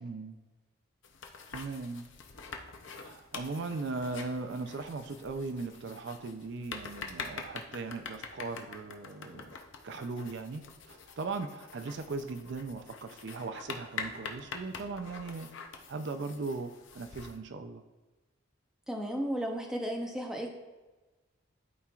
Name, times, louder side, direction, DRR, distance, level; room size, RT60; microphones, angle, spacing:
voice 1, 0.0-0.4 1.5-2.1 2.9-9.5 9.8-15.5 15.9-17.8, right 3 dB, 55° right, 8 dB, 0.4 m, -38 dB
sound 1, 1.0-17.4, left 5 dB, 65° left, 0.6 m, -45 dB
voice 2, 18.9-20.5, equal, 5° right, 0 dB, 0.6 m, -34 dB
12.0 x 4.3 x 2.4 m, 1.2 s
head